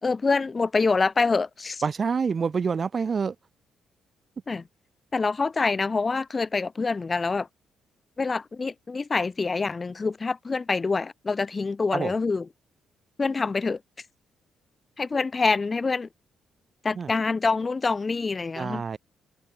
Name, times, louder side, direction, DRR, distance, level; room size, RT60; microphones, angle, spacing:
voice 1, 0.0-1.8 4.5-4.6 5.1-7.5 8.2-12.5 13.2-13.8 15.0-16.1 16.8-18.8, left 4 dB, 30° left, 2.0 m, -26 dB
voice 2, 1.8-3.3 11.9-12.1 17.0-17.1 18.6-19.0, right 5 dB, 40° right, 2.7 m, -27 dB
cardioid pair, 90°, 0 cm